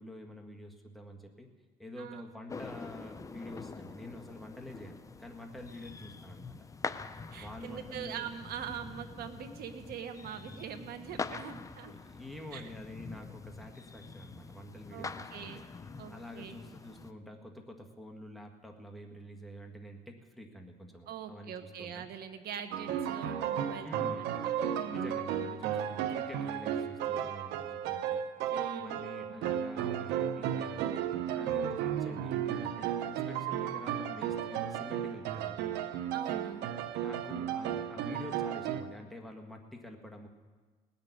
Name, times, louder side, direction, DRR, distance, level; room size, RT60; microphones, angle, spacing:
voice 1, 0.0-1.5 1.8-6.5 7.4-8.3 10.5-10.6 11.6-15.6 16.1-22.1 23.8-24.3 24.6-28.2 28.5-31.0 31.3-35.8 37.0-40.3, left 1 dB, ahead, 2 dB, 1.7 m, -47 dB
sound 1, 2.5-17.1, left 4 dB, 20° left, 0.6 m, -45 dB
voice 2, 7.3-11.9 12.5-12.7 14.9-15.6 16.0-16.6 21.1-23.9 24.2-25.2 28.5-29.1 36.1-36.7, right 8 dB, 65° right, 7 dB, 1.4 m, -43 dB
sound 2, 22.7-38.8, right 9 dB, 90° right, 0.8 m, -34 dB
18.5 x 6.9 x 9.6 m, 1.4 s
cardioid pair, 110°, 17 cm